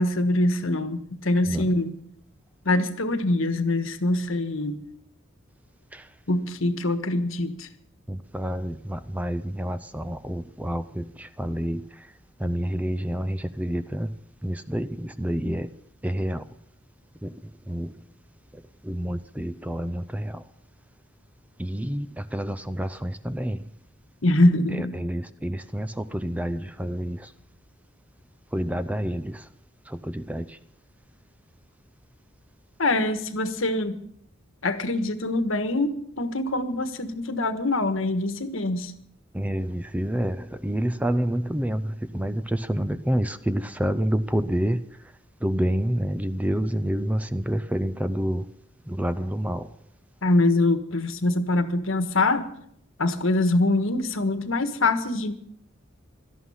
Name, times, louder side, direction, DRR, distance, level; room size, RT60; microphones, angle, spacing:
voice 1, 0.0-1.9 2.6-4.8 6.3-7.7 24.2-24.9 32.8-34.0 34.6-38.9 50.2-52.5 53.0-55.3, left 2 dB, 75° left, 1.4 m, -24 dB
voice 2, 8.1-11.0 11.4-11.8 12.4-14.1 14.4-15.7 16.0-16.4 17.2-17.3 17.7-17.9 18.9-20.3 21.6-22.1 22.3-23.6 25.0-27.2 28.5-29.4 30.1-30.4 39.3-41.8 42.1-44.8 45.4-48.4 48.9-49.7, equal, 5° right, 0.5 m, -28 dB
17.5 x 13.0 x 5.7 m
head